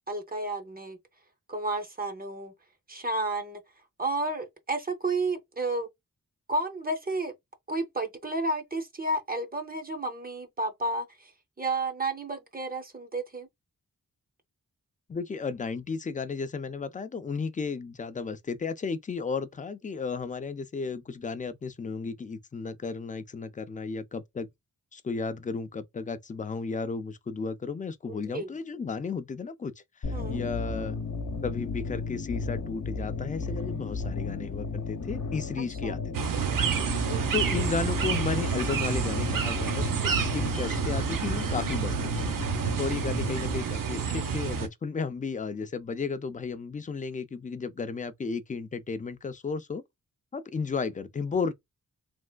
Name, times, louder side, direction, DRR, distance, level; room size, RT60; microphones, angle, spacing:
voice 1, 0.1-1.0 1.5-2.5 2.9-3.6 4.0-5.9 6.5-7.3 7.7-11.3 11.6-13.5 28.1-28.5 30.1-30.4 35.8-36.0 37.1-37.6, right 2 dB, 25° right, 0.6 m, -32 dB
voice 2, 15.1-24.5 24.9-29.7 30.0-31.0 31.4-36.4 37.3-42.3 42.8-49.8 50.3-51.5, left 5 dB, 25° left, 0.3 m, -34 dB
sound 1, 30.0-43.6, left 4 dB, 60° left, 0.8 m, -34 dB
sound 2, 36.1-44.7, right 7 dB, 70° right, 0.6 m, -29 dB
3.4 x 2.3 x 2.2 m
wide cardioid pair, 105°, 34 cm